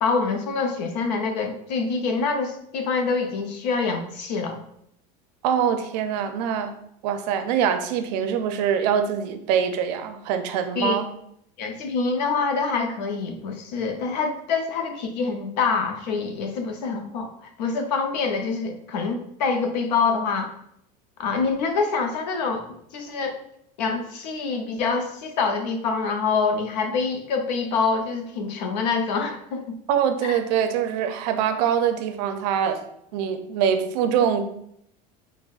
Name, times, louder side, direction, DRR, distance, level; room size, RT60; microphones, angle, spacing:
voice 1, 0.0-4.6 10.8-11.0 11.6-17.3 17.6-20.5 21.2-23.4 23.8-29.8 30.2-30.4, left 4 dB, 85° left, 5 dB, 0.7 m, -26 dB
voice 2, 5.4-6.7 7.0-11.1 29.9-32.8 33.1-34.5, right 8 dB, 75° right, 7 dB, 0.5 m, -24 dB
5.3 x 2.1 x 2.4 m, 0.72 s
supercardioid pair, 105°, 21 cm